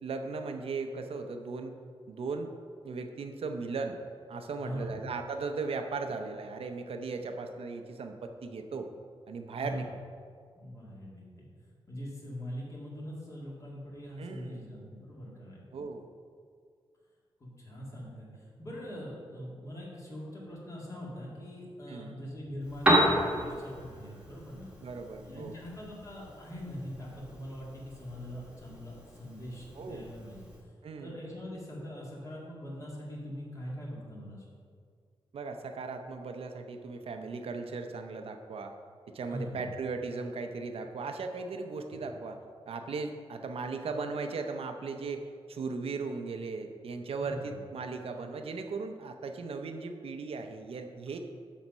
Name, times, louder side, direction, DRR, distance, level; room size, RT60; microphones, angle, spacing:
voice 1, 0.0-1.7 2.1-2.5 2.8-4.0 4.3-8.9 9.3-9.9 14.2-14.6 15.7-16.1 21.9-22.2 24.8-25.6 29.7-30.1 30.8-31.1 35.3-38.7 39.1-42.4 42.7-51.2, right 4 dB, 75° right, 5 dB, 0.7 m, -37 dB
voice 2, 4.6-5.0 9.5-9.8 10.6-11.5 11.9-15.7 17.4-24.7 25.2-30.5 31.0-34.4 39.3-39.7 47.2-47.6, equal, 35° left, -5 dB, 2.2 m, -42 dB
Piano, 22.6-30.6, equal, 10° right, 1.4 m, -33 dB
12.0 x 4.2 x 5.4 m, 2.1 s
wide cardioid pair, 165°, 10 cm